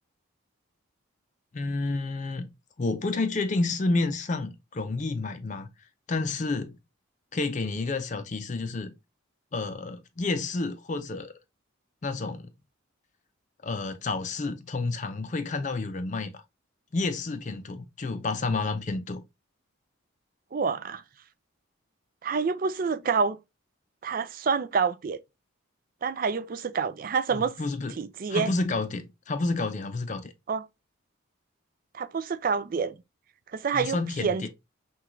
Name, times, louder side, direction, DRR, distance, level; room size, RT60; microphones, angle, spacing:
voice 1, 1.5-2.5 2.8-5.7 6.1-6.8 7.3-8.9 9.5-11.3 12.0-12.5 13.6-16.4 16.9-19.2 27.3-27.9 28.3-30.3 33.7-34.5, left 3 dB, 35° left, 0.4 m, -30 dB
voice 2, 20.5-21.0 22.2-23.4 24.0-25.2 26.0-27.6 28.0-28.5 30.5-30.7 31.9-32.9 33.5-34.5, right 5 dB, 40° right, 0.3 m, -27 dB
5.9 x 2.3 x 3.0 m
head